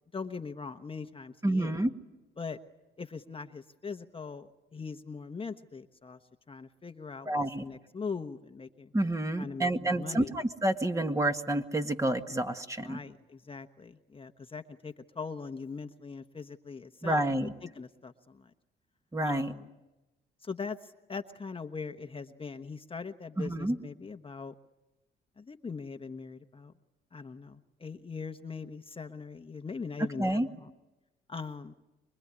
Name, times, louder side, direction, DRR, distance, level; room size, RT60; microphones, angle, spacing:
voice 1, 0.1-1.8 2.4-2.6 3.0-6.2 6.5-8.9 9.4-10.4 12.8-18.5 19.2-19.7 20.4-24.5 25.4-26.7 27.1-30.7 31.3-31.7, left 5 dB, 25° left, 7 dB, 1.2 m, -41 dB
voice 2, 1.4-1.9 7.3-7.7 8.9-13.0 17.0-17.5 19.1-19.5 23.4-23.8 30.2-30.5, right 1 dB, 15° right, 6 dB, 1.8 m, -29 dB
25.0 x 23.0 x 9.8 m, 1.0 s
cardioid pair, 90°, 20 cm